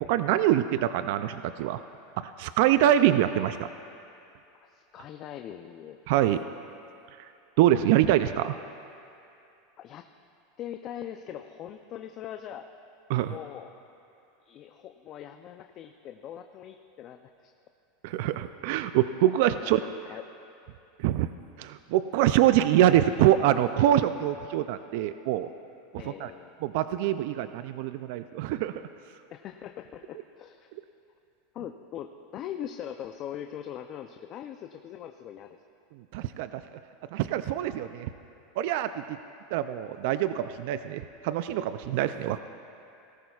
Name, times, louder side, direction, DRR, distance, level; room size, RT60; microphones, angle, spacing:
voice 1, 0.0-1.8 2.2-3.6 6.1-6.4 7.6-8.6 13.1-13.3 18.0-19.8 21.0-21.3 21.6-25.5 26.2-26.3 26.6-28.7 36.1-36.6 37.1-38.1 38.6-39.0 39.5-42.4, right 12 dB, 65° right, 11 dB, 0.3 m, -24 dB
voice 2, 4.6-6.0 9.8-10.1 10.6-12.7 13.2-13.8 14.4-17.5 19.6-20.2 26.0-26.6 29.3-30.7 31.5-35.6, left 10 dB, 40° left, 6 dB, 0.5 m, -41 dB
18.0 x 14.5 x 2.4 m, 2.7 s
supercardioid pair, 120°, 0 cm